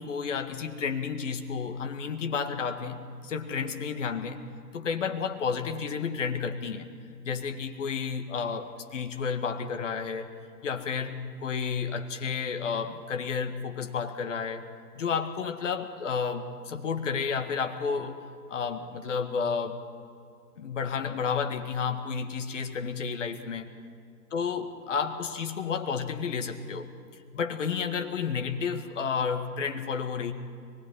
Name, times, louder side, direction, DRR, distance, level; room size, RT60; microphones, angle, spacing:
voice 1, 0.0-4.4 4.7-6.9 7.2-10.3 10.6-14.7 15.0-18.2 18.5-19.8 20.6-23.7 24.3-26.9 27.3-30.3, left 6 dB, 50° left, 6 dB, 1.9 m, -31 dB
24.0 x 20.0 x 5.5 m, 2.3 s
figure-of-eight pair, 135°, 48 cm